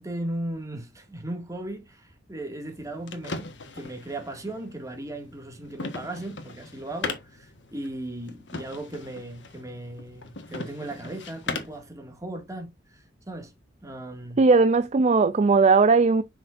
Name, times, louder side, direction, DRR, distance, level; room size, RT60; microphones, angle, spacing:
voice 1, 0.0-3.5 3.7-13.5 13.8-14.4, right 1 dB, 20° right, 2.0 m, -37 dB
sound 1, 2.6-11.9, left 3 dB, 90° left, 1.4 m, -39 dB
voice 2, 14.4-16.2, right 4 dB, 40° right, 0.4 m, -18 dB
7.2 x 6.0 x 2.5 m
head